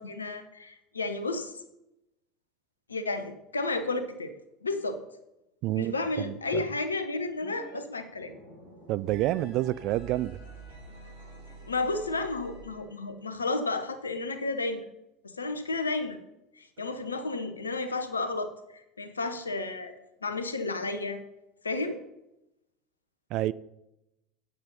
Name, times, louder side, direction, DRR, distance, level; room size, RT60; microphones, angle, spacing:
voice 1, 0.0-1.5 2.9-4.3 4.6-5.0 5.7-8.3 11.7-14.8 15.2-16.2 16.6-19.9 20.2-21.2 21.6-22.0, left 3 dB, 80° left, 1.0 m, -32 dB
voice 2, 5.6-6.6 8.9-10.4 23.3-23.5, right 15 dB, 50° right, 0.4 m, -29 dB
sound 1, 7.4-7.8 8.0-13.0, right 3 dB, 80° right, 3.2 m, -48 dB
8.9 x 8.4 x 5.6 m
figure-of-eight pair, 70°, 0 cm